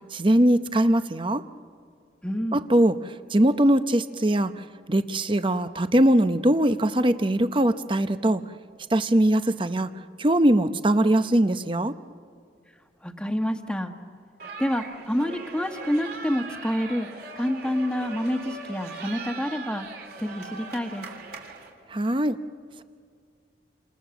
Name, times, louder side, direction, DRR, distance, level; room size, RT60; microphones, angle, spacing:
voice 1, 0.1-1.4 2.5-3.0 3.3-4.5 4.9-8.4 8.9-9.9 10.2-11.9 21.9-22.4, right 1 dB, 30° right, 10 dB, 0.8 m, -21 dB
voice 2, 2.2-2.6 13.0-13.9 14.6-17.1 17.3-19.9 20.2-21.1, equal, 5° left, 5 dB, 1.5 m, -28 dB
sound 1, 14.4-21.7, right 4 dB, 60° right, 3.6 m, -40 dB
29.0 x 27.5 x 7.2 m, 2.2 s
head